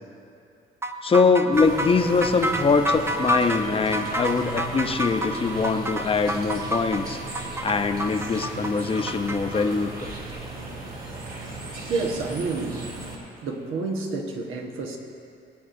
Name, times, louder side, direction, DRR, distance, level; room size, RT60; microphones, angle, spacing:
sound 1, 0.8-9.4, equal, 10° right, 0.6 m, -28 dB
voice 1, 1.0-7.2 7.6-10.1, left 4 dB, 30° left, 7 dB, 0.7 m, -23 dB
sound 2, 1.5-13.2, right 2 dB, 45° right, 2.7 m, -37 dB
voice 2, 11.8-12.8 13.4-15.0, right 3 dB, 85° right, 2 dB, 1.3 m, -29 dB
20.5 x 8.6 x 2.6 m, 2.5 s
cardioid pair, 90°, 20 cm